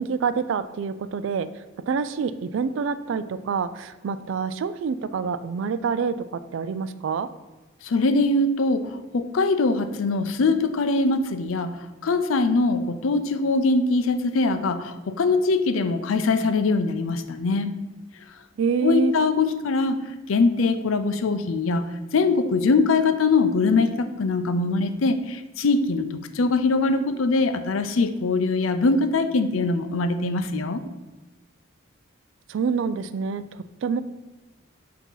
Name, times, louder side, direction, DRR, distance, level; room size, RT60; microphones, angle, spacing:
voice 1, 0.0-7.3 18.6-19.1 32.5-34.0, right 5 dB, 65° right, 13 dB, 0.3 m, -27 dB
voice 2, 7.8-17.7 18.8-20.0 20.3-30.8, left 3 dB, 85° left, 10 dB, 0.5 m, -22 dB
6.0 x 2.8 x 5.5 m, 1.2 s
head